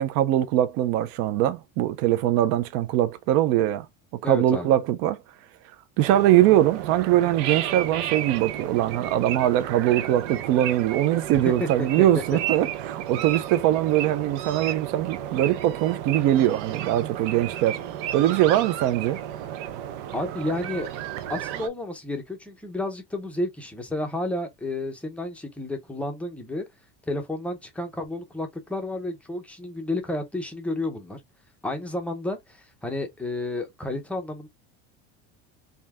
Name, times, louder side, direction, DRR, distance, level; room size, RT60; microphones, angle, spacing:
voice 1, 0.0-3.9 4.2-5.2 6.0-17.8 18.1-19.2, right 13 dB, 45° right, 0.4 m, -22 dB
voice 2, 4.2-4.7 11.3-12.1 20.1-20.9 21.2-26.6 27.1-31.2 31.6-34.5, left 1 dB, 5° left, 0.5 m, -31 dB
sound 1, 6.0-21.7, right 11 dB, 85° right, 0.7 m, -33 dB
3.4 x 2.7 x 3.3 m
cardioid pair, 175°, 34 cm